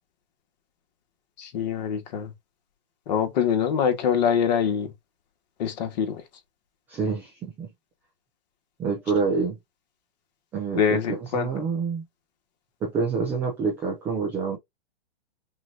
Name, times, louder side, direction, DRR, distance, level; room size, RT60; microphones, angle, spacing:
voice 1, 1.4-2.3 3.1-4.9 5.6-6.2 10.7-11.5, left 7 dB, 45° left, 1.8 m, -24 dB
voice 2, 6.9-7.7 8.8-9.6 10.5-12.0 12.8-14.6, right 5 dB, 5° right, 0.4 m, -27 dB
5.9 x 2.7 x 2.8 m
hypercardioid pair, 160°, 31 cm